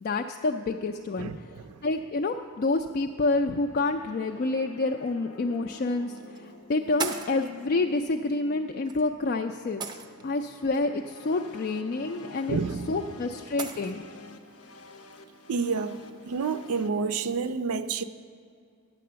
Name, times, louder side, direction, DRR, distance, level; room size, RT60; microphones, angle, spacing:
voice 1, 0.0-1.5 1.8-12.6 12.9-14.0, left 3 dB, 45° left, 0.3 m, -28 dB
sound 1, 3.3-16.9, left 2 dB, 90° left, 0.8 m, -49 dB
sound 2, 5.0-5.1 6.2-6.4 7.0-7.5 8.8-9.0 9.8-10.4 12.4-12.5 13.6-13.9, right 4 dB, 20° right, 0.5 m, -35 dB
voice 2, 12.5-12.9 15.5-16.0 16.3-18.0, right 5 dB, 85° right, 0.5 m, -29 dB
10.0 x 7.7 x 6.7 m
head